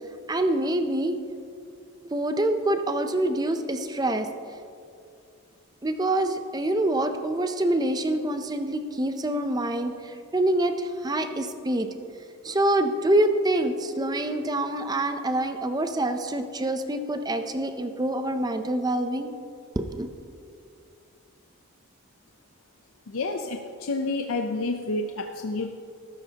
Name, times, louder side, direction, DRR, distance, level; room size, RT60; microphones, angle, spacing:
voice 1, 0.3-1.2 2.1-4.3 5.8-11.9 12.4-19.3 19.8-20.1, right 1 dB, 20° right, 8 dB, 0.5 m, -26 dB
voice 2, 23.1-25.7, left 2 dB, 70° left, 4 dB, 0.6 m, -29 dB
14.0 x 13.5 x 2.9 m, 2.4 s
head